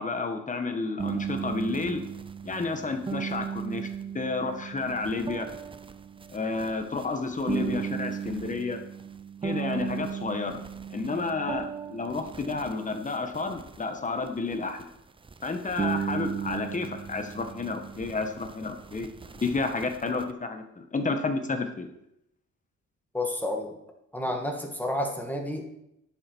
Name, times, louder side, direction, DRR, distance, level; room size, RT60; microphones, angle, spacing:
voice 1, 0.0-2.0 2.4-3.9 4.1-5.5 6.3-8.8 9.4-10.6 10.9-14.8 15.4-19.1 19.4-21.9, left 3 dB, 25° left, 6 dB, 1.4 m, -31 dB
sound 1, 1.0-13.8 14.3-15.0 15.2-20.3, right 7 dB, 20° right, 0.5 m, -36 dB
voice 2, 23.1-23.7 24.1-25.7, left 1 dB, 5° left, 2 dB, 1.8 m, -30 dB
11.0 x 8.3 x 4.7 m, 0.80 s
wide cardioid pair, 140°, 29 cm